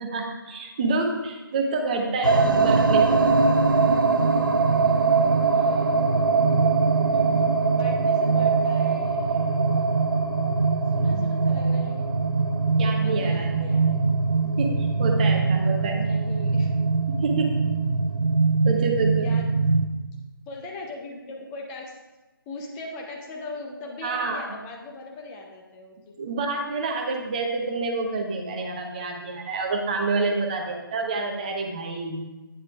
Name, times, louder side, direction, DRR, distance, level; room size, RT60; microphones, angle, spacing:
voice 1, 0.0-3.2 7.1-7.3 11.1-11.2 12.8-13.5 14.6-16.1 17.1-17.5 18.6-19.3 24.0-24.5 26.2-32.2, right 3 dB, 20° right, 2 dB, 0.8 m, -28 dB
sound 1, 2.2-19.9, right 4 dB, 60° right, 0.8 m, -22 dB
voice 2, 2.3-3.3 5.5-6.1 7.1-9.6 10.9-12.1 13.0-14.0 15.9-16.7 19.2-19.5 20.5-22.0 22.5-26.1 30.5-30.8, left 3 dB, 10° left, 0 dB, 0.7 m, -40 dB
10.5 x 9.6 x 2.4 m, 1.1 s
figure-of-eight pair, 155°, 12 cm